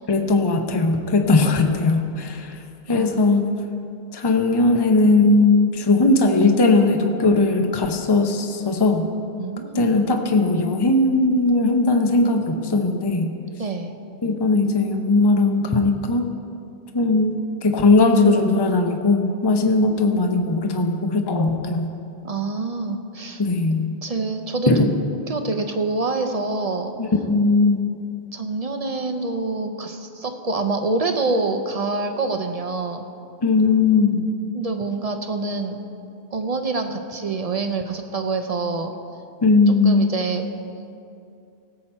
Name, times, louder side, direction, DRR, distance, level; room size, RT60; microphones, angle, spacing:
voice 1, 0.1-2.6 2.9-3.4 4.1-9.1 9.7-13.3 14.2-16.3 16.9-21.9 23.4-23.9 24.7-24.9 27.0-27.9 33.4-34.2 39.4-40.2, left 3 dB, 25° left, 5 dB, 0.7 m, -18 dB
voice 2, 9.4-9.9 13.6-13.9 22.2-23.4 24.0-24.8 25.3-26.9 28.3-33.0 34.5-35.8 36.3-38.9 39.8-40.5, right 3 dB, 40° right, 6 dB, 0.7 m, -26 dB
17.0 x 7.6 x 4.4 m, 2.6 s
omnidirectional pair, 1.1 m